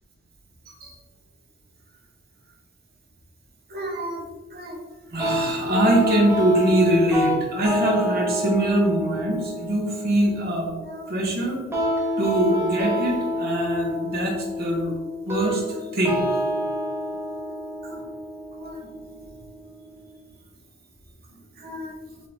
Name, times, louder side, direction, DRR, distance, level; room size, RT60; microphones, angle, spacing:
voice 1, 3.7-4.2 4.5-4.8 5.1-11.9 12.2-14.9 15.2-16.2 17.8-18.1 18.5-18.9 21.6-22.2, right 1 dB, 45° right, 0 dB, 0.9 m, -24 dB
sound 1, 5.2-20.1, equal, 10° right, 0.9 m, -29 dB
3.6 x 3.5 x 3.9 m, 1.2 s
head